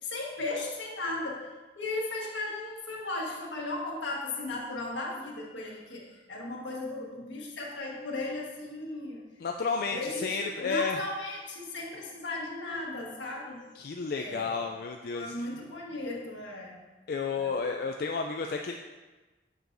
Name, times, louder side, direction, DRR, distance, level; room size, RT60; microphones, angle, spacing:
voice 1, 0.0-9.2 9.8-13.6 14.1-14.6 15.1-16.8 17.3-17.6, left 2 dB, 85° left, -3 dB, 1.4 m, -36 dB
voice 2, 9.4-11.0 13.8-15.3 17.1-18.7, left 4 dB, 55° left, 3 dB, 0.3 m, -31 dB
7.2 x 6.4 x 2.6 m, 1.2 s
head